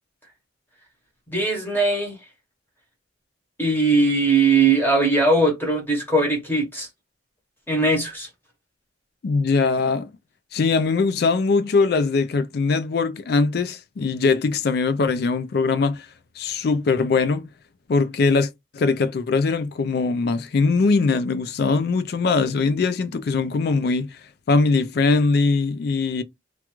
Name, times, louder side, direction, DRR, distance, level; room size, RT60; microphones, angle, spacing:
voice 1, 1.3-2.2 3.6-6.9 7.7-8.3, right 3 dB, 10° left, 0.8 m, -20 dB
voice 2, 9.2-10.1 10.5-16.1 16.4-17.4 17.9-24.2 24.5-26.2, left 4 dB, 55° left, 0.4 m, -21 dB
2.4 x 2.3 x 2.9 m
head